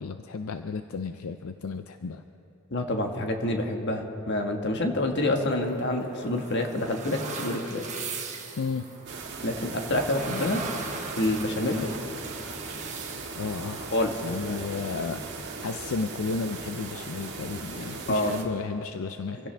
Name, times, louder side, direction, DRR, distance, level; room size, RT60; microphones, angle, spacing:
voice 1, 0.0-2.2 8.6-8.9 11.8-11.9 13.4-13.9 14.2-15.2 15.6-19.4, left 4 dB, 75° left, 8 dB, 0.5 m, -33 dB
voice 2, 2.7-7.9 9.4-10.6 11.2-11.8 13.9-14.1 14.4-14.6 18.1-18.4, left 1 dB, 55° left, 3 dB, 1.5 m, -27 dB
sound 1, 5.2-14.8, right 5 dB, 35° right, 1.5 m, -41 dB
sound 2, 9.1-18.4, right 3 dB, 55° right, 1.8 m, -38 dB
26.0 x 16.5 x 3.4 m, 3.0 s
head